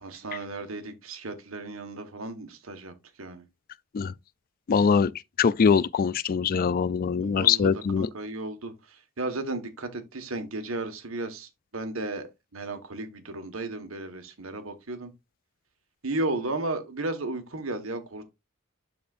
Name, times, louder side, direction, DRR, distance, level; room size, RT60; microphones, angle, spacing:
voice 1, 0.0-3.4 7.2-7.7 8.0-12.3 12.5-15.1 16.0-18.2, right 2 dB, 85° right, 1.6 m, -34 dB
voice 2, 4.7-5.1 5.4-8.1, left 6 dB, 45° left, 0.3 m, -23 dB
12.5 x 4.3 x 2.6 m
head